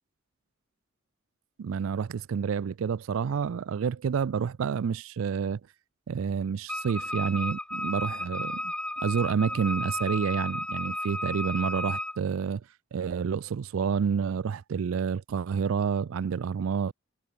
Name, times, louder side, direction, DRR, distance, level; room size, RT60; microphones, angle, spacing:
voice 1, 1.6-5.6 6.1-8.7 9.0-12.6 12.9-16.9, right 6 dB, 75° right, 0.4 m, -29 dB
Wind instrument woodwind instrument, 6.7-12.2, left 1 dB, 5° left, 0.5 m, -33 dB
head